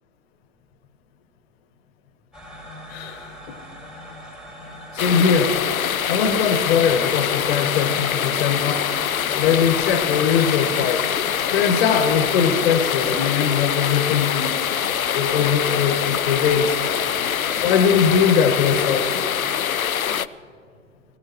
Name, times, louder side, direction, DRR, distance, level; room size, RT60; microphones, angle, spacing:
sound 1, 2.3-19.1, equal, ahead, 4.5 m, -41 dB
voice 1, 2.9-3.3 4.9-5.5 6.1-8.9 9.3-11.1 11.5-14.5 15.1-16.7 17.6-19.1, left 6 dB, 45° left, 8 dB, 1.6 m, -21 dB
sound 2, 5.0-20.3, left 9 dB, 85° left, 0.6 m, -24 dB
22.0 x 16.0 x 3.0 m, 2.2 s
figure-of-eight pair, 105°, 41 cm